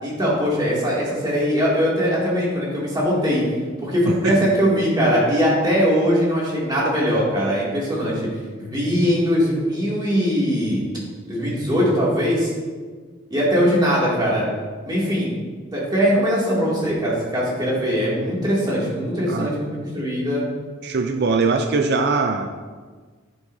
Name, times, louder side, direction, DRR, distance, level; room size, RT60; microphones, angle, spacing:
voice 1, 0.0-3.4 3.8-8.3 8.6-10.8 11.3-12.5 13.3-14.5 14.8-15.3 15.7-20.4, equal, 20° right, -6 dB, 2.5 m, -21 dB
voice 2, 4.1-4.5 19.3-19.5 20.8-22.5, right 4 dB, 55° right, 5 dB, 0.4 m, -21 dB
10.0 x 7.8 x 2.7 m, 1.5 s
head